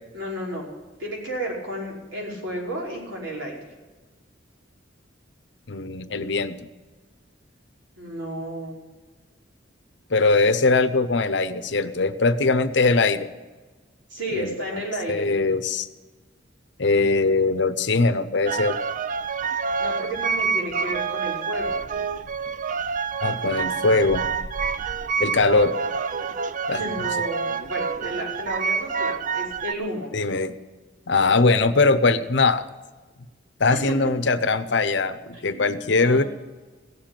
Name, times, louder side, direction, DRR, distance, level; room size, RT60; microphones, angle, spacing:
voice 1, 0.1-0.7 1.0-3.7 8.0-8.8 14.1-15.3 19.8-21.8 26.7-30.1 33.6-33.8 35.3-36.3, right 1 dB, 75° right, -3 dB, 5.4 m, -32 dB
voice 2, 5.7-6.6 10.1-13.3 14.3-14.8 15.1-15.9 16.8-18.8 23.2-24.3 25.2-25.7 26.7-26.8 30.1-30.6 31.1-32.6 33.6-36.2, left 3 dB, 65° left, 12 dB, 0.8 m, -21 dB
sound 1, 18.5-29.7, right 5 dB, 40° right, 0.5 m, -27 dB
16.5 x 7.6 x 9.0 m, 1.3 s
head